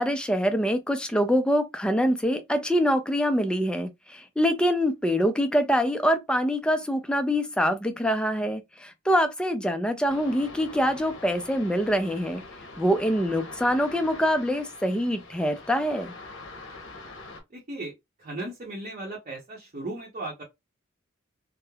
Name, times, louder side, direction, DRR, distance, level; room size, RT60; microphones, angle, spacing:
voice 1, 0.0-12.4 12.8-16.1, equal, 5° left, 0.3 m, -25 dB
sound 1, 10.1-17.4, left 3 dB, 70° left, 0.8 m, -44 dB
voice 2, 17.5-20.4, right 2 dB, 40° right, 0.7 m, -37 dB
3.0 x 2.0 x 2.2 m
head